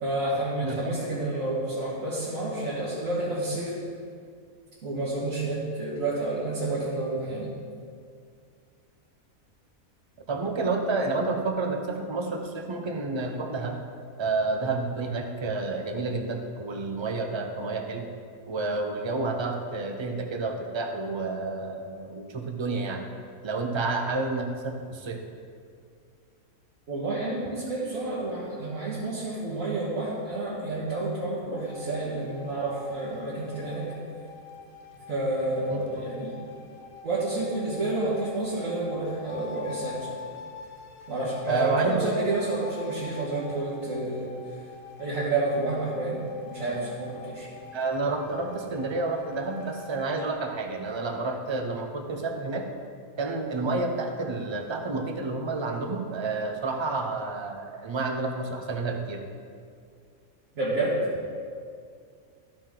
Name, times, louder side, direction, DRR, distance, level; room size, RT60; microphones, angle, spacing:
voice 1, 0.0-3.8 4.8-7.5 26.9-33.9 35.1-36.4 37.0-40.2 41.1-44.3 45.0-46.2 46.5-47.5 60.6-61.0, right 2 dB, 70° right, -8 dB, 2.0 m, -29 dB
voice 2, 0.6-0.9 10.3-13.8 14.2-18.1 18.5-23.1 23.4-25.2 35.7-35.8 41.5-42.1 47.7-52.7 53.2-59.2, right 3 dB, 40° right, 4 dB, 0.4 m, -30 dB
sound 1, 31.5-50.3, left 5 dB, 85° left, 1.3 m, -46 dB
13.0 x 4.9 x 3.7 m, 2.2 s
omnidirectional pair, 1.5 m